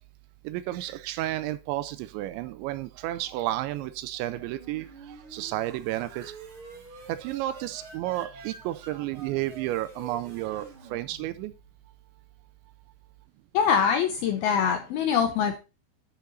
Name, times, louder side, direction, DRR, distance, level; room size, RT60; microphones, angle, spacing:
voice 1, 0.4-6.3 7.1-11.5, right 15 dB, 80° right, 2.8 m, -32 dB
sound 1, 4.2-11.9, right 3 dB, 40° right, 2.1 m, -48 dB
voice 2, 13.5-15.6, left 7 dB, 80° left, 2.2 m, -23 dB
10.5 x 6.7 x 4.1 m
omnidirectional pair, 5.4 m